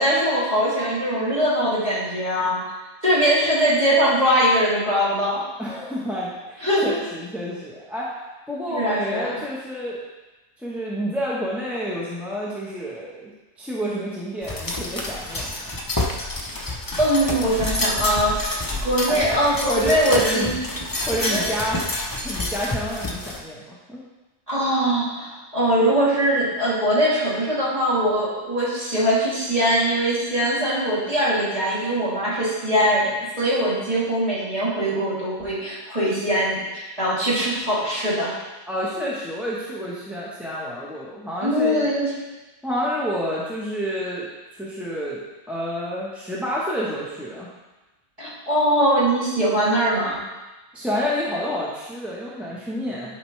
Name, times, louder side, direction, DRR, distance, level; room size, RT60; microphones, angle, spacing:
voice 1, 0.0-2.6 3.0-5.4 6.6-6.9 8.7-9.3 17.0-18.5 18.8-20.5 21.2-21.4 24.5-38.3 41.4-42.1 48.2-50.2, equal, 30° right, -10 dB, 3.0 m, -21 dB
voice 2, 5.6-8.1 8.5-10.0 10.6-13.3 13.6-15.8 19.1-19.3 19.7-20.6 21.1-21.8 22.2-24.0 38.7-41.9 42.6-45.2 45.5-47.5 50.7-53.2, equal, ahead, -7 dB, 1.0 m, -29 dB
sound 1, 14.4-23.4, left 2 dB, 20° left, 0.7 m, -28 dB
11.5 x 5.2 x 3.3 m, 1.1 s
omnidirectional pair, 1.3 m